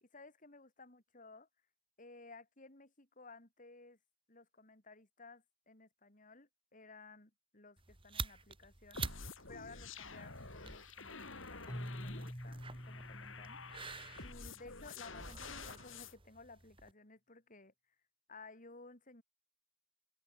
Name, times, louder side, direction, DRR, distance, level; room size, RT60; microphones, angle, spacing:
voice 1, 0.0-1.5 2.0-4.0 4.3-9.0 9.5-12.6 12.9-13.8 14.2-17.7 18.3-19.2, left 3 dB, 40° left, 3.8 m, -57 dB
sound 1, 7.8-16.9, right 5 dB, 25° right, 1.7 m, -49 dB
sound 2, 8.9-16.1, left 4 dB, 70° left, 7.4 m, -49 dB
Keyboard (musical), 11.7-14.6, equal, 20° left, 4.5 m, -47 dB
open air
head